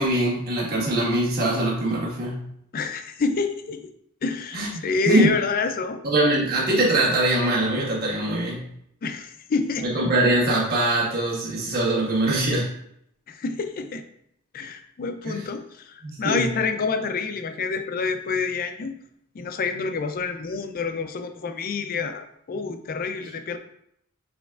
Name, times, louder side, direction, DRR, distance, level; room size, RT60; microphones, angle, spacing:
voice 1, 0.0-2.5 4.5-4.7 5.0-5.3 6.0-8.7 9.8-12.7 15.2-15.4 16.0-16.5, right 1 dB, 45° right, -5 dB, 1.4 m, -22 dB
voice 2, 2.7-3.8 4.2-6.0 9.0-9.9 13.3-14.0 14.5-19.0 19.3-23.6, left 4 dB, 40° left, 8 dB, 0.4 m, -28 dB
6.0 x 3.3 x 2.4 m, 0.73 s
head